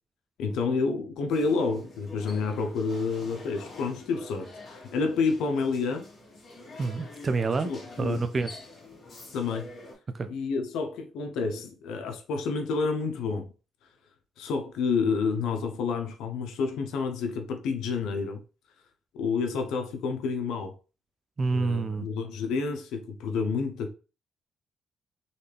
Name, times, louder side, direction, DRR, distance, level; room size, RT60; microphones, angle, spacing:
voice 1, 0.4-6.0 7.6-8.2 9.3-9.7 10.3-13.5 14.4-18.4 19.1-20.7 21.5-23.9, left 4 dB, 85° left, 0.8 m, -29 dB
sound 1, 1.3-9.9, left 2 dB, 45° left, 2.2 m, -46 dB
voice 2, 6.8-7.7 8.0-8.6 10.1-10.3 21.4-22.1, right 4 dB, 35° right, 0.5 m, -28 dB
4.1 x 3.3 x 3.4 m
cardioid pair, 90°, 0 cm